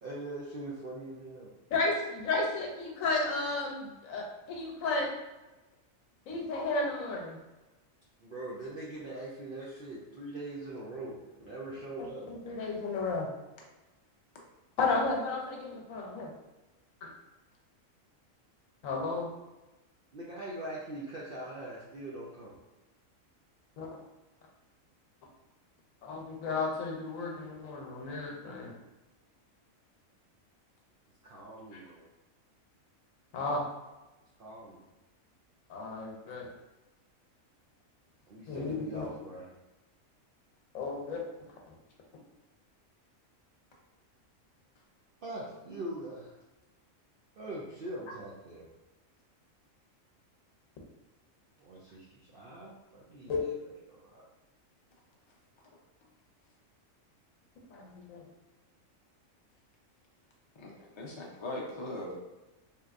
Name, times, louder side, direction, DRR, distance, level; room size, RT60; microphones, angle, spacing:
voice 1, 0.0-1.5 8.2-12.2 20.1-22.5 31.2-32.1 34.4-34.8 38.3-39.5 45.2-46.3 47.4-48.7 51.6-53.5 53.9-54.2, right 1 dB, 55° right, -6 dB, 0.6 m, -42 dB
voice 2, 1.7-5.1 6.3-7.4 12.3-13.3 14.8-16.3 17.0-17.1 18.8-19.3 23.8-23.9 26.0-28.7 33.3-33.6 35.7-36.5 38.5-39.1 40.7-41.2 41.7-41.8 53.3-53.4 57.7-58.3, left 3 dB, 80° left, 0 dB, 1.1 m, -33 dB
voice 3, 60.6-62.1, left 1 dB, 40° left, -3 dB, 0.4 m, -40 dB
3.6 x 2.8 x 2.4 m, 1.1 s
omnidirectional pair, 1.4 m